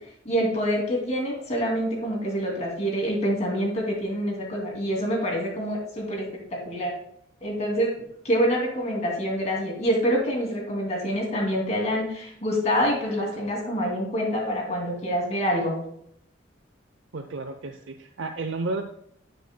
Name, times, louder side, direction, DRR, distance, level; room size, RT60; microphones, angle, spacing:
voice 1, 0.2-6.9 7.4-7.9 8.2-15.8, equal, 35° left, -1 dB, 2.5 m, -26 dB
voice 2, 17.1-18.8, right 3 dB, 85° right, 5 dB, 0.6 m, -32 dB
16.0 x 6.7 x 2.2 m, 0.71 s
head